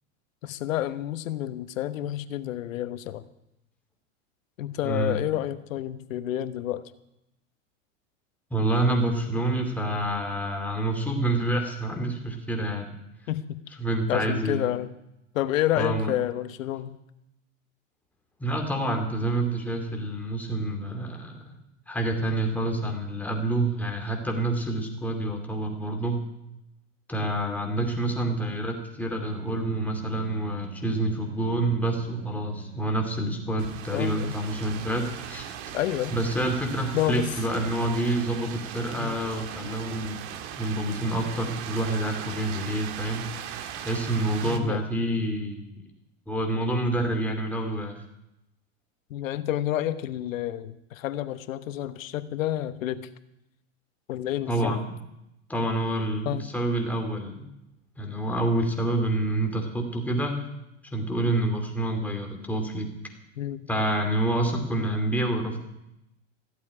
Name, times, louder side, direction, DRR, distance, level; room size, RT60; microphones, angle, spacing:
voice 1, 0.4-3.2 4.6-6.8 13.3-13.6 14.1-14.9 15.3-17.0 27.8-27.9 33.9-34.3 35.7-36.1 36.9-37.3 39.0-39.2 44.4-44.8 49.1-53.1 54.1-54.8 56.2-56.5 61.2-61.3 63.4-63.7, left 13 dB, 85° left, 12 dB, 1.2 m, -29 dB
voice 2, 4.8-5.2 8.5-12.9 13.8-14.6 15.7-16.1 18.4-21.5 21.9-26.2 27.1-35.5 36.1-40.2 40.6-43.3 43.8-45.8 46.3-48.0 54.5-54.8 55.5-57.5 58.0-60.4 60.9-62.9 63.7-65.6, right 1 dB, 5° left, 2 dB, 2.6 m, -27 dB
Bowed string instrument, 29.2-34.1, right 6 dB, 85° right, 7.1 m, -41 dB
sound 1, 33.6-44.6, right 9 dB, 60° right, 1.7 m, -39 dB
15.0 x 8.5 x 9.7 m, 0.86 s
supercardioid pair, 140°, 39 cm